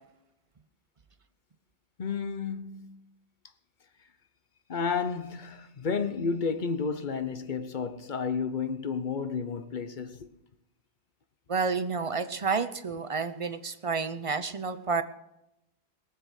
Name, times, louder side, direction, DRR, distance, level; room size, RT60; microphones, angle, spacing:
voice 1, 2.0-3.0 4.7-10.3, left 5 dB, 50° left, 1.0 m, -31 dB
voice 2, 11.5-15.0, right 5 dB, 35° right, 0.7 m, -30 dB
19.5 x 7.6 x 6.4 m
omnidirectional pair, 1.1 m